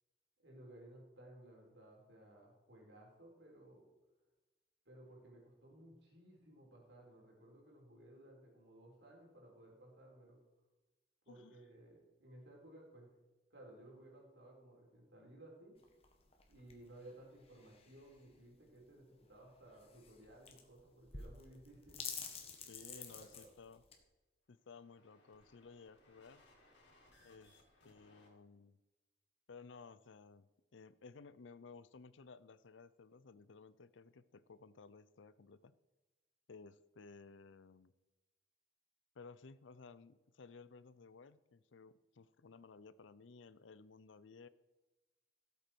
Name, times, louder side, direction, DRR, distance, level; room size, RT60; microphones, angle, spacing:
voice 1, 0.4-3.9 4.8-10.4 11.3-13.1 13.5-15.7 16.5-22.0 22.8-23.5, right 1 dB, 70° right, -1 dB, 4.3 m, -58 dB
sound 1, 15.8-24.0, left 6 dB, 30° left, 1.4 m, -51 dB
voice 2, 22.7-23.8 24.5-26.4 27.2-27.6 27.8-28.8 29.5-35.8 36.5-37.9 39.2-44.5, left 4 dB, 85° left, 16 dB, 0.6 m, -57 dB
sound 2, 24.5-28.3, left 1 dB, 65° left, 3.8 m, -68 dB
17.0 x 8.2 x 4.5 m, 1.1 s
head